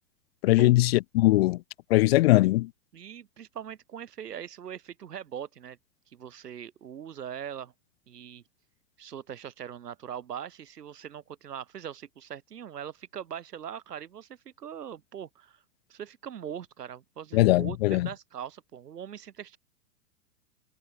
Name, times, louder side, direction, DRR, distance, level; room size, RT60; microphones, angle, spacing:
voice 1, 0.4-1.6 1.9-2.7 17.3-18.1, left 18 dB, 40° left, 0.8 m, -21 dB
voice 2, 2.9-5.8 6.1-7.7 8.1-8.4 9.0-15.6 15.9-19.6, right 9 dB, 90° right, 5.5 m, -41 dB
hypercardioid pair, 150°, 46 cm